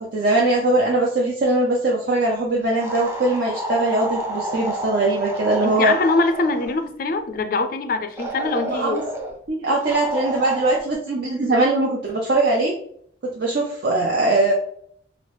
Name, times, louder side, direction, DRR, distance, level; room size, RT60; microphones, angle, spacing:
voice 1, 0.0-5.9 8.7-9.0 9.5-12.7 13.2-14.5, right 2 dB, 55° right, -3 dB, 0.6 m, -21 dB
sound 1, 2.8-6.8 8.2-9.3 9.8-10.8, right 1 dB, 15° right, 0.6 m, -30 dB
voice 2, 5.6-9.0, left 3 dB, 50° left, 8 dB, 0.4 m, -23 dB
3.9 x 2.0 x 3.3 m, 0.64 s
head